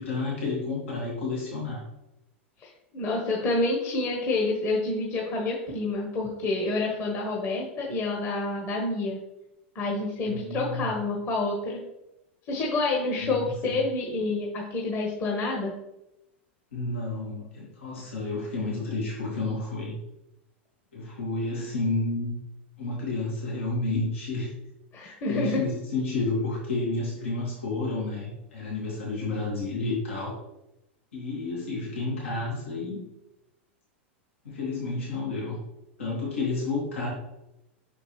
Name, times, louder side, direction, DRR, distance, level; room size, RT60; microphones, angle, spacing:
voice 1, 0.0-1.8 10.2-11.0 13.2-13.5 16.7-20.0 20.9-22.4 22.8-24.5 25.0-30.4 31.1-33.0 34.4-35.6 36.0-37.1, left 3 dB, 85° left, -5 dB, 2.2 m, -30 dB
voice 2, 2.6-9.2 9.7-11.8 12.4-15.7 24.9-25.6, left 2 dB, 40° left, -2 dB, 1.4 m, -28 dB
6.0 x 5.1 x 3.2 m, 0.89 s
hypercardioid pair, 100°, 7 cm